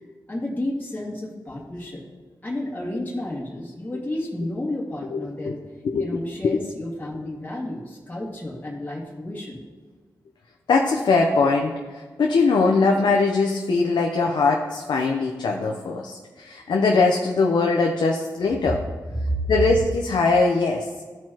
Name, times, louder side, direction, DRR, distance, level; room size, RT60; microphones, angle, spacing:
voice 1, 0.3-2.0 2.4-5.6 6.0-9.6 19.2-19.4, left 1 dB, 20° left, -6 dB, 2.0 m, -31 dB
voice 2, 10.7-18.8 19.5-20.9, left 3 dB, 85° left, 1 dB, 0.7 m, -21 dB
13.5 x 4.7 x 2.9 m, 1.5 s
cardioid pair, 65°, 7 cm